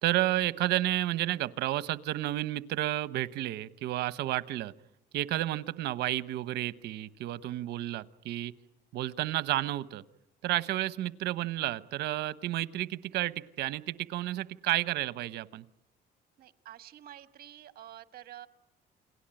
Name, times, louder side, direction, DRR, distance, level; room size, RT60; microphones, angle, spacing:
voice 1, 0.0-4.7 5.1-8.5 8.9-10.0 10.4-15.6, right 15 dB, 80° right, 16 dB, 1.0 m, -31 dB
voice 2, 16.4-18.5, right 12 dB, 65° right, 11 dB, 1.5 m, -49 dB
29.0 x 20.5 x 9.0 m, 0.84 s
cardioid pair, 110°, 17 cm